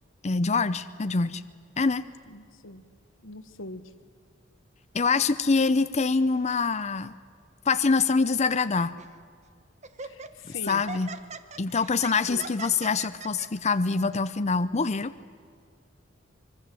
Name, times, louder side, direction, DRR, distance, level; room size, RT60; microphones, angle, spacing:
voice 1, 0.2-1.4 1.8-2.1 4.9-7.1 7.7-9.0 10.5-11.1 11.6-15.1, left 4 dB, 35° left, 12 dB, 0.6 m, -25 dB
voice 2, 2.3-2.8 3.2-3.8 10.5-10.8 12.3-12.5, left 1 dB, 90° left, 11 dB, 1.4 m, -40 dB
Laughter, 9.0-9.2 9.8-13.5, right 5 dB, 35° right, 1.1 m, -40 dB
25.0 x 23.0 x 7.7 m, 2.1 s
head